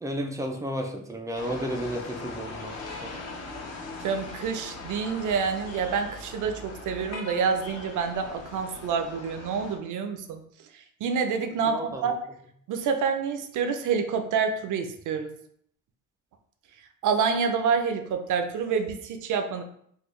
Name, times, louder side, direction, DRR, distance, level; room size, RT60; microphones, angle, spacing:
voice 1, 0.0-2.8 3.0-3.1 11.7-12.2, equal, 10° right, 3 dB, 0.3 m, -32 dB
sound 1, 1.4-9.8, left 3 dB, 50° left, 0.7 m, -40 dB
voice 2, 4.0-10.4 10.7-12.1 12.7-15.3 17.0-19.6, right 6 dB, 65° right, 6 dB, 0.5 m, -27 dB
3.7 x 2.2 x 3.1 m, 0.67 s
cardioid pair, 145°, 33 cm